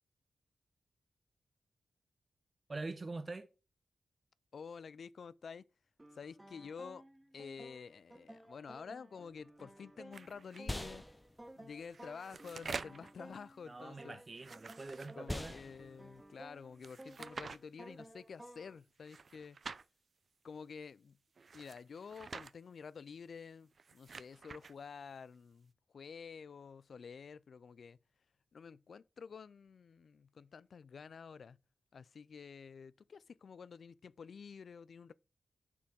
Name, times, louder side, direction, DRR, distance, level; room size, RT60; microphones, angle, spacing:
voice 1, 2.7-3.5 13.7-15.6, right 3 dB, 40° right, 0.9 m, -44 dB
voice 2, 4.5-5.7 6.1-7.0 7.3-11.0 11.6-14.2 15.2-19.6 20.4-21.2 21.5-28.0 28.5-31.6 31.9-35.1, left 6 dB, 70° left, 0.3 m, -50 dB
sound 1, 6.0-18.8, right 1 dB, 20° right, 1.8 m, -56 dB
sound 2, 9.5-18.9, left 1 dB, 20° left, 0.8 m, -49 dB
sound 3, 10.1-10.6 11.8-13.1 14.3-15.6 16.8-17.6 19.0-19.9 21.4-22.5 23.7-24.7, right 5 dB, 60° right, 0.5 m, -48 dB
6.9 x 4.5 x 6.1 m
supercardioid pair, 40°, 0 cm